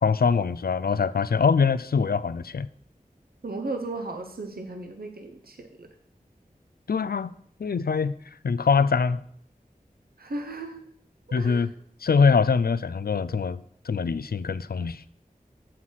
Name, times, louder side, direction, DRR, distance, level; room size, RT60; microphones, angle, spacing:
voice 1, 0.0-2.7 6.9-7.3 7.6-8.2 8.4-9.2 11.3-11.7 12.0-15.0, left 5 dB, 85° left, 16 dB, 0.4 m, -23 dB
voice 2, 3.4-5.9 10.2-10.8 11.4-11.7, right 2 dB, 80° right, 4 dB, 0.8 m, -35 dB
7.4 x 5.8 x 6.2 m, 0.65 s
wide cardioid pair, 45°, 15 cm